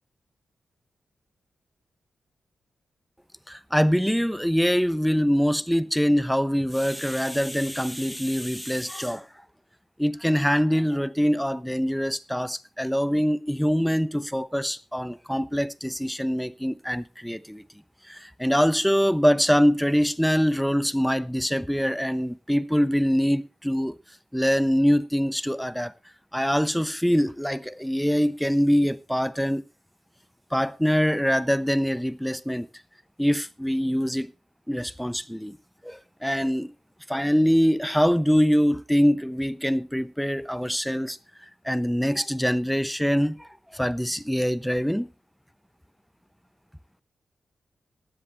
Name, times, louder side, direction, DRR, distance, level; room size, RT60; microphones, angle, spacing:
voice 1, 3.5-9.3 10.0-17.6 18.1-24.0 24.3-25.9 26.3-29.6 30.5-32.7 33.2-34.3 34.7-35.6 35.8-36.7 37.1-41.2 41.6-45.1, equal, ahead, 0.5 m, -24 dB
15.5 x 11.0 x 3.5 m
wide cardioid pair, 170°, 0 cm